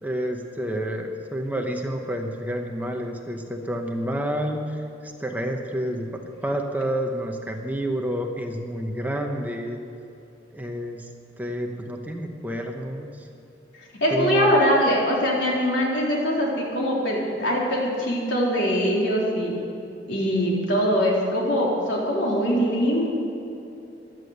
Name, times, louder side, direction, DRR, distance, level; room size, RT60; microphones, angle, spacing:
voice 1, 0.0-9.8 10.5-11.1 11.4-13.3 14.1-14.5, equal, 10° right, 3 dB, 1.0 m, -29 dB
voice 2, 14.0-19.5 20.1-23.1, equal, 80° left, -3 dB, 3.8 m, -22 dB
15.5 x 11.5 x 6.7 m, 2.9 s
head